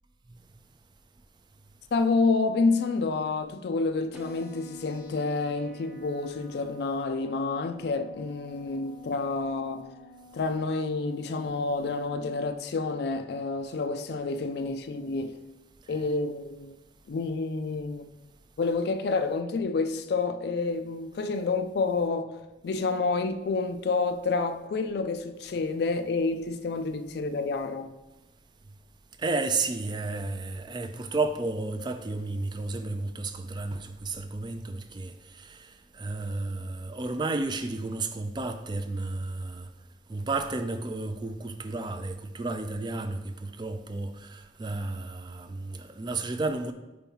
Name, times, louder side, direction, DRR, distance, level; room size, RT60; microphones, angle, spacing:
voice 1, 1.9-9.9 10.3-15.3 15.9-16.7 17.1-18.1 18.6-22.4 22.6-27.9, left 3 dB, 60° left, 0.3 m, -29 dB
sound 1, 4.1-12.1, left 1 dB, 5° right, 0.9 m, -50 dB
voice 2, 29.2-39.7 40.1-46.7, right 3 dB, 25° right, 0.3 m, -32 dB
4.5 x 4.3 x 5.5 m
head